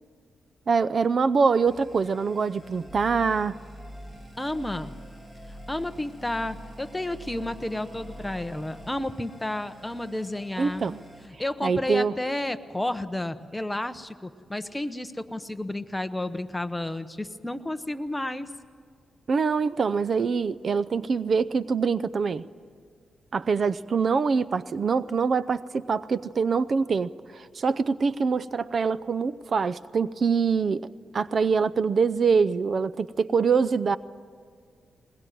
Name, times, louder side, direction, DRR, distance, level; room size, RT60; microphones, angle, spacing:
voice 1, 0.7-3.6 10.6-11.0 11.6-12.1 19.3-22.4 23.3-30.9 31.1-34.0, right 5 dB, 50° right, 15 dB, 0.5 m, -24 dB
sound 1, 1.7-11.3, equal, 15° right, 3.5 m, -45 dB
voice 2, 4.4-4.9 5.5-10.9 11.2-18.5, left 1 dB, 10° left, 10 dB, 1.0 m, -31 dB
21.5 x 21.0 x 9.3 m, 2.1 s
cardioid pair, 110°, 0 cm